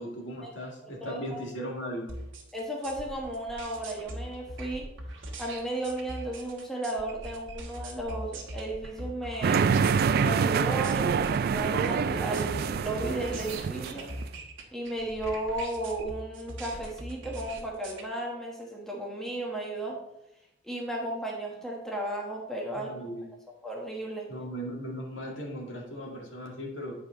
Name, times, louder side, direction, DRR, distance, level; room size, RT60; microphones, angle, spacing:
voice 1, 0.0-2.1 22.7-23.2 24.3-27.0, equal, 70° left, -2 dB, 2.0 m, -37 dB
voice 2, 0.8-1.4 2.5-4.9 5.4-9.7 10.2-14.0 14.7-20.0 20.6-23.1 23.6-24.3, right 1 dB, ahead, -2 dB, 1.1 m, -34 dB
sound 1, 2.1-18.0, right 1 dB, 70° right, 1.4 m, -41 dB
sound 2, 9.4-14.2, right 6 dB, 50° right, 0.3 m, -26 dB
8.8 x 4.8 x 3.8 m, 0.85 s
head